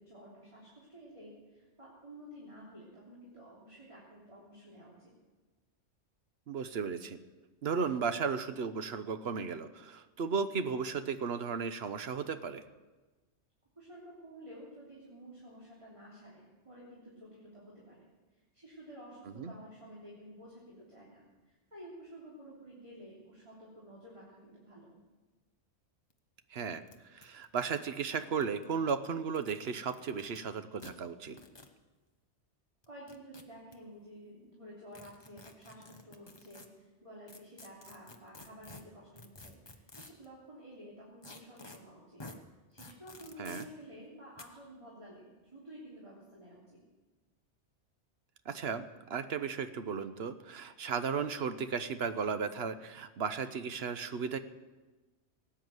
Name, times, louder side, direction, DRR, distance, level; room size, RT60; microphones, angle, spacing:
voice 1, 0.0-5.1 13.8-18.1 18.5-25.0 32.9-42.2 42.7-46.8, equal, 25° right, -6 dB, 3.4 m, -52 dB
voice 2, 6.5-7.2 7.6-12.6 19.4-19.5 26.5-26.8 27.1-31.4 43.4-43.6 48.5-54.4, right 6 dB, 60° right, 11 dB, 1.0 m, -35 dB
sound 1, 26.1-26.2 26.4-26.5 26.9-27.0 27.2-28.6 29.2-30.4 30.8-30.9 31.4-31.7 32.8-33.7 34.9-36.7 37.3-40.3 41.2-41.8 42.2-42.4 42.8-43.7 44.4-44.5, left 2 dB, 25° left, 1.1 m, -51 dB
18.5 x 9.0 x 7.8 m, 1.2 s
omnidirectional pair, 1.2 m